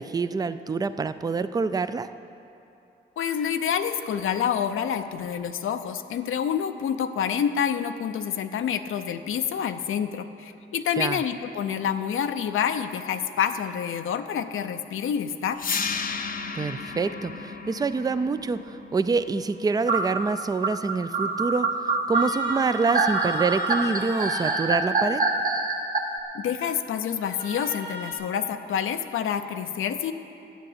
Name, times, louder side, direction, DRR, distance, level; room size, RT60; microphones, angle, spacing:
voice 1, 0.0-2.1 11.0-11.2 16.5-25.2, right 4 dB, 20° right, 12 dB, 0.3 m, -26 dB
voice 2, 3.2-15.7 26.3-30.1, left 8 dB, 90° left, 8 dB, 0.6 m, -28 dB
sound 1, 15.6-21.6, left 5 dB, 45° left, 0.7 m, -35 dB
sound 2, 19.9-26.0, right 3 dB, 45° right, 1.0 m, -25 dB
sound 3, 22.1-24.6 27.2-28.1, right 1 dB, 60° right, 2.0 m, -38 dB
10.5 x 8.5 x 7.9 m, 2.7 s
wide cardioid pair, 125°, 20 cm